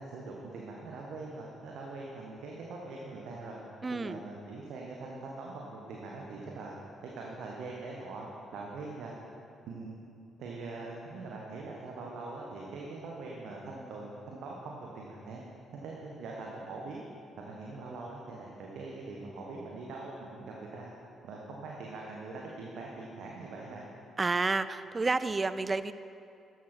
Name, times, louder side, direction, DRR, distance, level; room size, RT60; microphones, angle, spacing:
voice 1, 0.0-3.6 3.9-6.7 7.0-9.2 9.7-10.0 10.4-15.4 15.8-17.0 17.4-20.9 21.2-23.8, right 3 dB, 60° right, -2 dB, 1.2 m, -42 dB
voice 2, 3.8-4.2 24.2-25.9, right 3 dB, 30° right, 14 dB, 0.5 m, -30 dB
13.5 x 10.5 x 4.4 m, 2.6 s
figure-of-eight pair, 40°, 0 cm